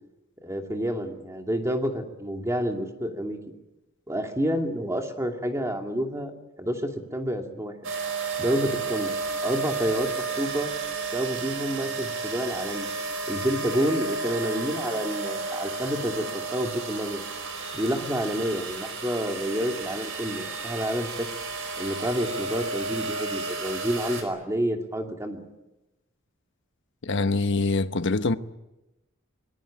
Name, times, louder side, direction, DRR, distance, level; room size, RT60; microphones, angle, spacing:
voice 1, 0.4-3.4 4.1-7.7 8.4-9.1 9.4-10.1 10.4-10.7 11.1-12.9 13.3-17.2 17.7-21.3 21.8-25.5, equal, 15° right, 2.5 m, -29 dB
sound 1, 7.8-24.2, right 4 dB, 70° right, 4.9 m, -32 dB
voice 2, 27.0-28.4, left 3 dB, 60° left, 1.0 m, -24 dB
24.5 x 21.0 x 8.7 m
head